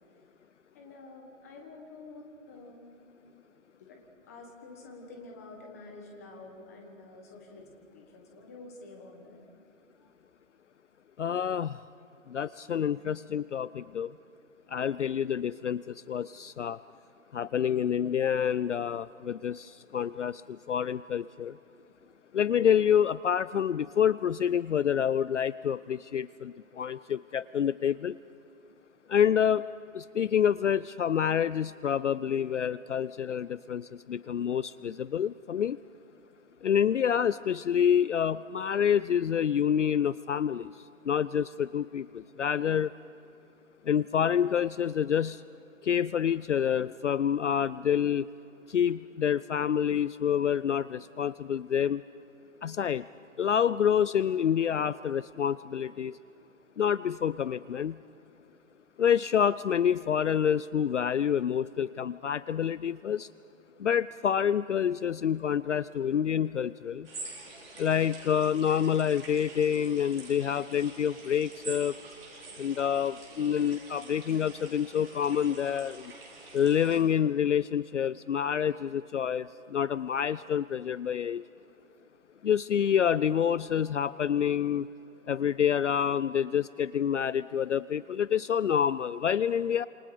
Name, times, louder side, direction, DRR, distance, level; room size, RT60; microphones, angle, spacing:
voice 1, 0.7-2.9 3.8-9.5, left 3 dB, 10° left, 1 dB, 1.4 m, -48 dB
voice 2, 11.2-11.8 12.3-14.1 14.7-16.8 17.3-21.6 22.3-28.2 29.1-29.6 29.9-35.8 36.6-40.7 41.1-42.9 43.8-45.4 45.8-48.3 48.7-52.0 52.6-53.0 53.4-56.2 56.8-58.0 59.0-63.3 63.8-67.1 67.8-71.9 72.6-76.1 76.5-81.4 82.4-84.9 85.3-89.9, left 8 dB, 60° left, 17 dB, 0.5 m, -27 dB
sound 1, 67.0-77.0, right 3 dB, 45° right, 6.2 m, -46 dB
28.5 x 27.5 x 5.1 m, 2.9 s
hypercardioid pair, 175°, 41 cm